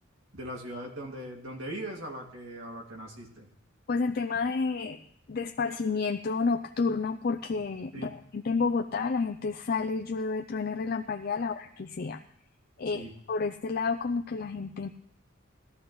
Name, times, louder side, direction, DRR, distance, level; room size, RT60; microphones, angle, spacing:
voice 1, 0.3-3.5 7.9-8.2 11.4-11.5 12.9-13.1, right 1 dB, 65° right, 0 dB, 2.4 m, -40 dB
voice 2, 3.9-5.0 5.3-12.2 12.8-14.9, left 4 dB, 45° left, 6 dB, 0.4 m, -30 dB
17.5 x 12.5 x 3.1 m, 0.70 s
head